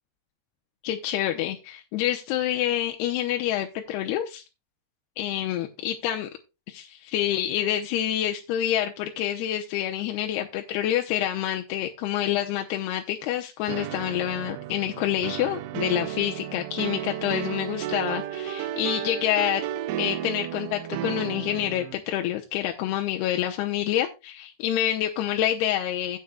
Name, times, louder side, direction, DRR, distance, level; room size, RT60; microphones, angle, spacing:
voice 1, 0.8-4.4 5.2-6.3 6.7-19.6 20.0-26.2, left 11 dB, 90° left, 3 dB, 2.8 m, -27 dB
sound 1, 13.7-22.0, right 12 dB, 85° right, 2.7 m, -33 dB
16.0 x 7.6 x 2.3 m, 0.27 s
omnidirectional pair, 4.6 m